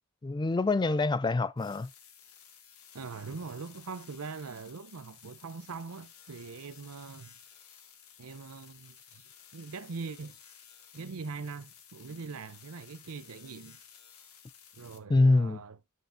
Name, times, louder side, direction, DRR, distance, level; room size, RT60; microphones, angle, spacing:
voice 1, 0.2-1.9 15.1-15.6, left 2 dB, 20° left, 0.4 m, -25 dB
sound 1, 1.6-15.0, left 8 dB, 80° left, 1.7 m, -55 dB
voice 2, 2.9-7.4 8.2-9.2 9.5-10.4 10.9-13.8 14.7-15.8, right 4 dB, 75° right, 0.7 m, -42 dB
9.5 x 3.2 x 5.6 m
head